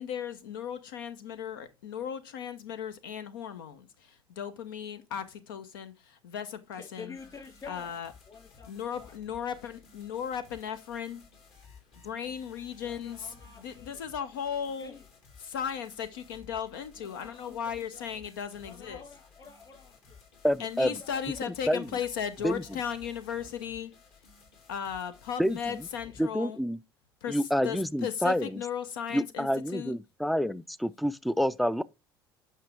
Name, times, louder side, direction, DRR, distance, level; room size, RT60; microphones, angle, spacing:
voice 1, 0.0-7.1 7.7-8.1 8.7-11.2 12.0-14.9 15.4-19.0 20.6-23.9 24.7-26.6 27.2-29.9, left 8 dB, 65° left, 0.7 m, -36 dB
voice 2, 6.7-8.0 8.3-9.1 12.8-14.0 14.8-15.0 16.9-18.1 18.6-20.2 20.6-21.8 22.4-22.8 26.0-26.2, left 5 dB, 30° left, 3.5 m, -49 dB
sound 1, 7.1-26.3, left 5 dB, 50° left, 2.8 m, -56 dB
voice 3, 20.4-21.0 21.5-21.9 22.4-22.6 25.4-25.9 26.2-26.8 27.3-28.6 29.1-31.8, equal, ahead, 0.4 m, -28 dB
8.5 x 5.8 x 3.5 m
figure-of-eight pair, 60°, 12 cm